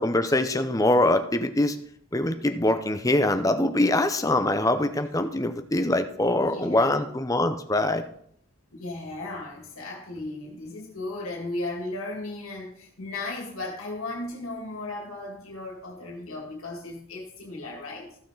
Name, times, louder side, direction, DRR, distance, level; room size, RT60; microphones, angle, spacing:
voice 1, 0.0-1.8 2.1-8.0, left 1 dB, 15° left, 9 dB, 0.6 m, -23 dB
voice 2, 6.2-7.2 8.7-18.2, left 2 dB, 75° left, 0 dB, 2.1 m, -36 dB
14.5 x 6.5 x 3.9 m, 0.67 s
head